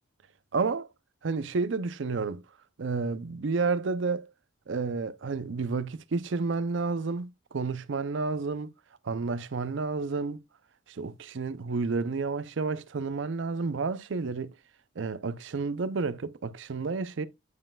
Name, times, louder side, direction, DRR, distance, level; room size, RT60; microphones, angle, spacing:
voice 1, 0.5-0.9 1.2-2.4 2.8-4.3 4.7-8.7 9.0-10.4 10.9-14.5 15.0-17.3, right 4 dB, 65° right, 0.5 m, -30 dB
9.5 x 5.4 x 2.3 m
head